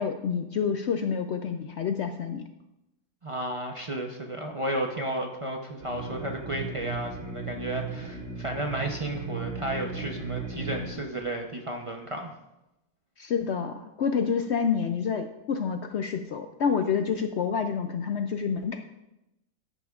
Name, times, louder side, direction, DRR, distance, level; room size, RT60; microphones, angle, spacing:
voice 1, 0.0-2.4 13.2-18.8, left 6 dB, 75° left, 7 dB, 0.6 m, -28 dB
voice 2, 3.2-12.3, right 1 dB, 35° right, 2 dB, 0.5 m, -33 dB
sound 1, 5.8-10.9, right 4 dB, 85° right, 2.8 m, -36 dB
13.5 x 9.8 x 2.4 m, 0.92 s
omnidirectional pair, 1.7 m